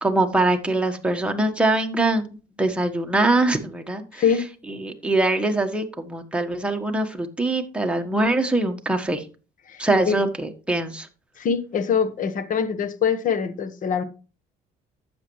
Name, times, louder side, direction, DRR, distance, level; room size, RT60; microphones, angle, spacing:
voice 1, 0.0-2.3 2.6-4.2 4.7-9.2 9.8-11.1, right 2 dB, 5° right, 1.4 m, -23 dB
voice 2, 4.1-4.5 9.7-10.2 11.4-14.0, left 7 dB, 50° left, 1.3 m, -24 dB
11.5 x 8.0 x 3.2 m
cardioid pair, 110°, 17 cm